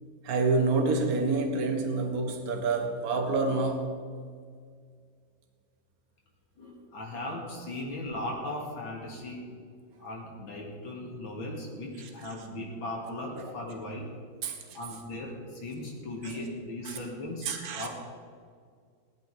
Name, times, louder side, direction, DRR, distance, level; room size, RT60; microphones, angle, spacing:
voice 1, 0.2-4.0 6.7-6.8 7.9-8.0 12.0-12.3 13.4-13.5 14.4-14.8 16.2-16.3 16.8-17.0 17.4-17.9, right 3 dB, 50° right, 4 dB, 1.8 m, -28 dB
voice 2, 6.6-9.5 10.0-14.1 14.7-17.9, left 1 dB, 75° left, -2 dB, 3.0 m, -38 dB
17.0 x 12.5 x 4.9 m, 2.1 s
omnidirectional pair, 2.2 m